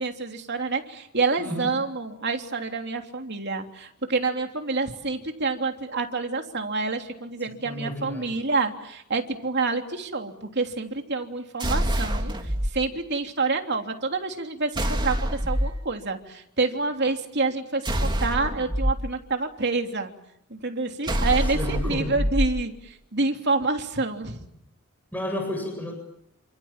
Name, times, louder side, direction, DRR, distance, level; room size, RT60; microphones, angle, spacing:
voice 1, 0.0-12.3 12.7-15.1 15.5-20.1 20.5-24.5, right 3 dB, 50° right, 4 dB, 3.3 m, -28 dB
voice 2, 1.4-1.7 7.5-8.4 21.5-22.2 25.1-25.9, left 1 dB, 10° left, 3 dB, 7.7 m, -32 dB
sound 1, 11.6-12.7 14.7-15.8 17.8-18.9 21.0-22.5, equal, 20° right, 2.8 m, -25 dB
29.0 x 27.5 x 7.5 m, 0.77 s
head